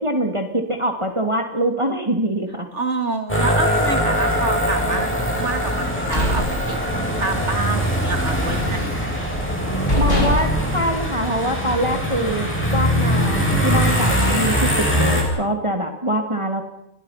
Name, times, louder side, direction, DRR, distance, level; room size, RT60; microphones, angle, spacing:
voice 1, 0.0-2.7 9.9-16.6, right 1 dB, 20° right, 5 dB, 2.7 m, -24 dB
voice 2, 2.7-5.1 5.4-6.8 7.2-8.9, right 3 dB, 55° right, 8 dB, 2.9 m, -27 dB
sound 1, 3.3-15.2, equal, 10° left, 7.6 m, -22 dB
sound 2, 6.1-7.3 7.7-8.0 8.3-9.1 9.5-9.6 9.9-11.7, left 1 dB, 60° left, 5.9 m, -24 dB
29.5 x 23.0 x 5.9 m, 0.77 s
omnidirectional pair, 1.4 m